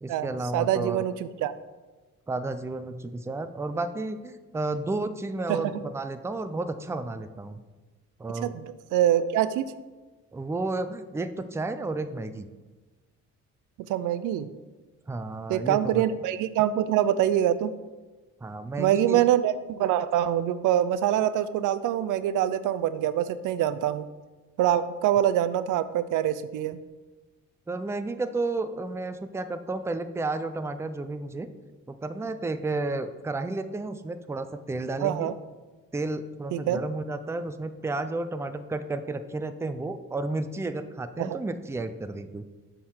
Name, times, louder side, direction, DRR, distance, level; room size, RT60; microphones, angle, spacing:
voice 1, 0.0-1.0 2.3-7.6 8.2-8.6 10.3-12.5 15.1-16.1 18.4-19.2 27.7-31.5 31.9-35.3 35.9-42.5, right 2 dB, 10° right, 10 dB, 0.4 m, -32 dB
voice 2, 0.5-1.5 5.5-5.6 8.4-9.7 13.9-14.5 15.5-17.7 18.8-24.1 24.6-26.8 35.0-35.3 36.5-36.8 41.2-41.4, right 11 dB, 85° right, 13 dB, 0.5 m, -25 dB
7.0 x 3.8 x 6.4 m, 1.3 s
cardioid pair, 90°, 30 cm